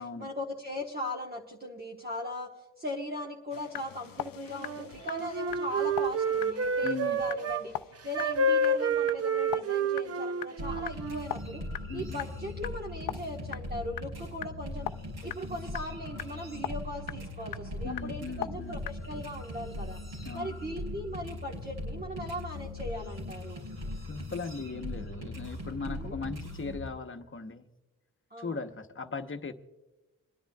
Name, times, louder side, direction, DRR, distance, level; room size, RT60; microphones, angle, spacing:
voice 1, 0.2-2.5 2.8-7.7 8.0-11.6 11.9-14.9 15.2-20.0 20.3-23.7 25.8-26.2 28.3-28.6, left 1 dB, 30° right, -1 dB, 1.3 m, -39 dB
sound 1, 3.5-11.8 12.2-12.3 12.6-13.2 13.5-19.2, left 12 dB, 75° left, 0.5 m, -41 dB
Wind instrument woodwind instrument, 4.5-7.6 8.1-11.3, right 3 dB, 45° right, 0.6 m, -29 dB
voice 2, 6.8-7.2 11.9-12.2 17.8-18.8 20.2-20.6 23.9-27.7 28.4-29.5, left 4 dB, 35° left, 7 dB, 1.0 m, -38 dB
sound 2, 10.6-26.9, left 1 dB, 80° right, 4.7 m, -40 dB
27.5 x 10.0 x 2.3 m, 1.1 s
cardioid pair, 85°, 34 cm